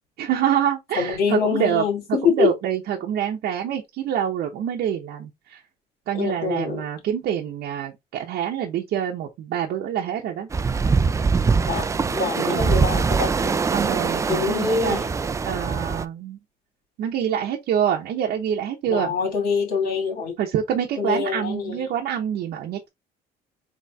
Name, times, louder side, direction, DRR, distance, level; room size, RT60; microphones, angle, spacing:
voice 1, 0.2-1.8 2.3-5.6 6.1-10.5 12.4-12.9 13.7-15.0 15.4-16.4 17.0-19.1 20.4-22.9, right 9 dB, 70° right, 0.8 m, -26 dB
voice 2, 1.0-2.5 6.1-6.8 11.7-11.9 12.1-13.3 14.3-15.1 18.9-20.3 21.0-21.8, left 5 dB, 65° left, 2.4 m, -24 dB
sound 1, 10.5-16.0, right 5 dB, 20° right, 0.3 m, -23 dB
4.1 x 3.0 x 3.4 m
cardioid pair, 110°, 17 cm